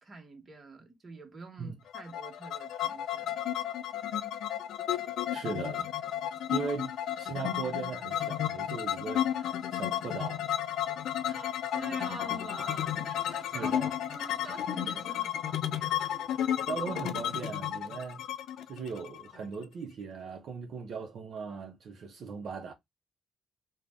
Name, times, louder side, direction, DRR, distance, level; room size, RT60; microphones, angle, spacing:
voice 1, 0.0-3.4 11.0-16.7, right 3 dB, 35° right, 1.0 m, -47 dB
sound 1, 1.9-19.6, left 11 dB, 75° left, 0.4 m, -33 dB
voice 2, 5.3-5.9 6.5-6.9 7.2-10.5 13.5-13.9 16.7-18.2 18.7-22.7, right 5 dB, 65° right, 0.5 m, -38 dB
2.5 x 2.1 x 3.3 m
cardioid pair, 90°, 0 cm